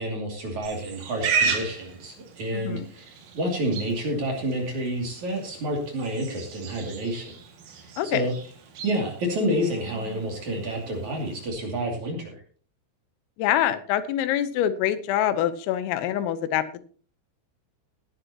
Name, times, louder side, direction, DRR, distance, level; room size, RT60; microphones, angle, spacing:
voice 1, 0.0-7.3 8.0-8.3 8.8-12.4, right 1 dB, 45° right, 1 dB, 3.3 m, -29 dB
Livestock farm animals working animals, 0.6-11.5, right 5 dB, 65° right, 4.3 m, -35 dB
voice 2, 2.5-2.9 8.0-8.3 13.4-16.8, left 11 dB, 90° left, 12 dB, 3.6 m, -25 dB
18.0 x 11.0 x 2.9 m, 0.40 s
omnidirectional pair, 5.8 m